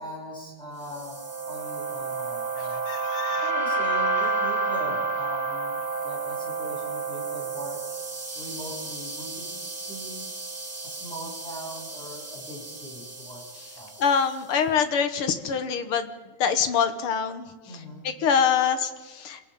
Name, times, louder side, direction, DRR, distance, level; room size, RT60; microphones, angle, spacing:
voice 1, 0.0-2.9 3.4-7.9 8.3-10.3 10.8-13.5 13.7-13.9 17.6-18.2, equal, ahead, -3 dB, 6.8 m, -40 dB
sound 1, 0.9-14.2, right 3 dB, 25° right, 3.2 m, -31 dB
voice 2, 2.9-3.4 14.0-16.1 16.4-17.4 18.2-19.4, left 7 dB, 55° left, 8 dB, 1.6 m, -24 dB
28.0 x 18.0 x 5.4 m, 1.3 s
omnidirectional pair, 3.7 m